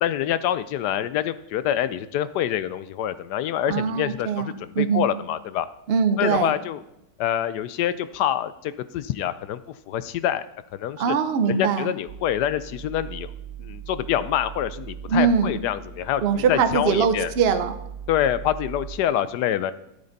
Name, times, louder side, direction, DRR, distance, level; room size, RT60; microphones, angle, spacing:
voice 1, 0.0-5.7 6.2-6.8 7.2-9.6 9.9-10.5 10.7-11.2 11.5-13.3 13.6-17.3 18.1-19.7, left 11 dB, 75° left, 14 dB, 1.1 m, -26 dB
voice 2, 3.7-5.1 5.9-6.5 11.0-11.9 15.1-15.6 16.2-17.8, right 6 dB, 55° right, 9 dB, 0.7 m, -22 dB
sound 1, 12.1-19.0, right 7 dB, 70° right, 1.5 m, -39 dB
12.0 x 8.5 x 4.0 m, 0.85 s
omnidirectional pair, 1.9 m